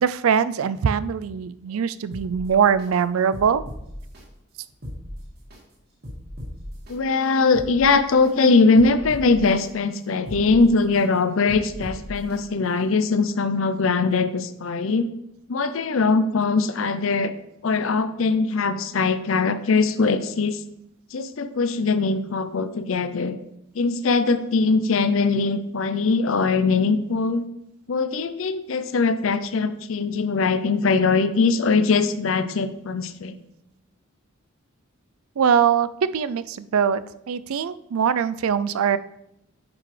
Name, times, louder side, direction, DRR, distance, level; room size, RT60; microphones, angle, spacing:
voice 1, 0.0-3.6 35.4-39.0, right 7 dB, 90° right, 15 dB, 0.4 m, -22 dB
sound 1, 2.1-2.9 3.3-4.2 4.7-5.6 6.0-6.9 7.4-8.3 8.7-9.7 10.1-11.0 11.5-12.4 12.8-12.9, equal, 50° right, 2.0 m, -38 dB
voice 2, 6.9-15.1 15.5-17.3 17.6-20.6 21.1-23.4 23.8-27.4 27.9-33.4, left 4 dB, 70° left, 12 dB, 0.5 m, -21 dB
9.6 x 5.9 x 3.2 m, 0.81 s
head